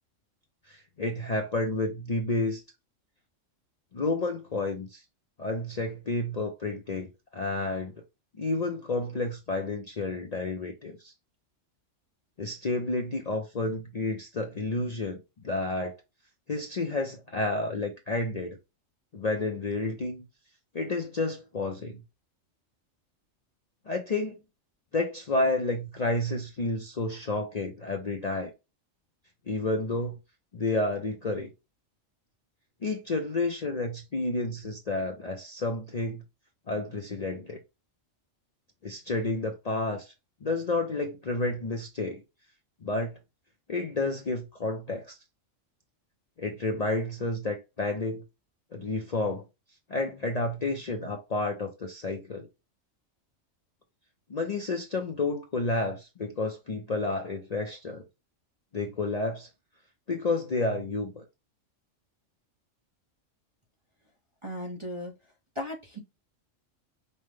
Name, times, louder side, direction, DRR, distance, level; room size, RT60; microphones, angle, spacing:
voice 1, 0.7-2.6 3.9-5.0 5.4-7.9 8.4-11.1 12.4-15.2 15.4-15.9 16.5-18.6 19.1-20.2 20.7-22.0 23.9-24.4 24.9-28.5 29.5-30.2 30.5-31.5 32.8-36.2 36.7-37.6 38.8-40.1 40.4-42.2 42.8-43.1 43.7-45.2 46.4-48.2 48.7-49.4 49.9-52.5 54.3-58.1 58.7-59.5 60.1-61.2, left 2 dB, 45° left, 0.5 m, -30 dB
voice 2, 64.4-65.1 65.6-66.0, left 1 dB, 30° right, 0.7 m, -36 dB
5.5 x 2.1 x 3.2 m
omnidirectional pair, 1.3 m